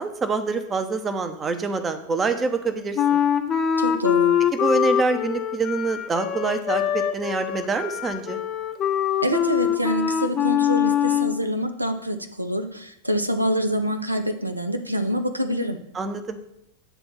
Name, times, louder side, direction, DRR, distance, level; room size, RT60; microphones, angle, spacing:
voice 1, 0.0-3.2 4.5-8.4 15.9-16.4, right 4 dB, 20° right, 8 dB, 0.7 m, -26 dB
Wind instrument woodwind instrument, 3.0-11.4, left 9 dB, 30° left, 0.6 m, -23 dB
voice 2, 3.8-4.4 9.2-15.8, equal, 85° right, 7 dB, 0.5 m, -26 dB
8.1 x 3.5 x 6.0 m, 0.79 s
figure-of-eight pair, 90°, 0 cm